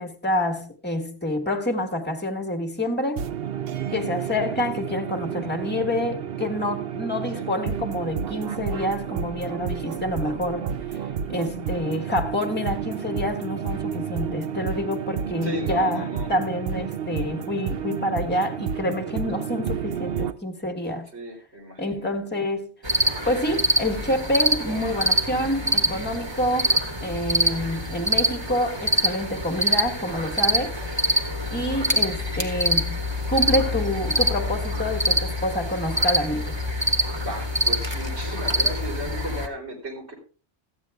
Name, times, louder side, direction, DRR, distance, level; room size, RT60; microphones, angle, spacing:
voice 1, 0.0-3.3 3.9-10.7 11.3-21.1 21.8-22.7 23.3-30.7 31.5-33.0 33.3-36.6, left 1 dB, 10° left, 1.3 m, -27 dB
sound 1, 3.2-20.3, right 7 dB, 65° right, 0.9 m, -31 dB
voice 2, 15.4-16.3 21.1-22.1 24.6-24.8 37.2-40.1, equal, 90° right, 4.1 m, -35 dB
sound 2, 22.8-39.5, equal, 25° right, 1.4 m, -25 dB
14.0 x 9.2 x 3.5 m
omnidirectional pair, 1.1 m